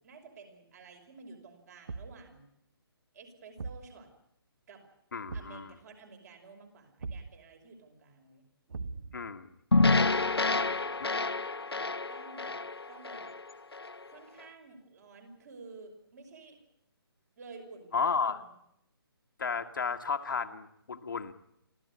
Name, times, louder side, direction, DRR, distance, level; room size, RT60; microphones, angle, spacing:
voice 1, 0.0-2.4 3.1-4.1 4.7-4.8 5.3-8.4 8.7-9.2 12.1-12.6 12.9-13.3 14.1-16.6 17.4-18.5, right 4 dB, 40° right, 4 dB, 5.6 m, -52 dB
Thump thud, 1.9-2.3 3.6-3.9 5.3-5.6 7.0-7.4 8.7-9.3, right 4 dB, 60° right, 0.8 m, -40 dB
voice 2, 5.1-5.7 9.1-9.5 11.0-11.1 17.9-18.4 19.4-21.3, left 5 dB, 55° left, 6 dB, 1.5 m, -33 dB
sound 1, 9.7-14.0, left 3 dB, 75° left, 0.9 m, -28 dB
26.0 x 15.0 x 9.9 m, 0.78 s
figure-of-eight pair, 140°, 13 cm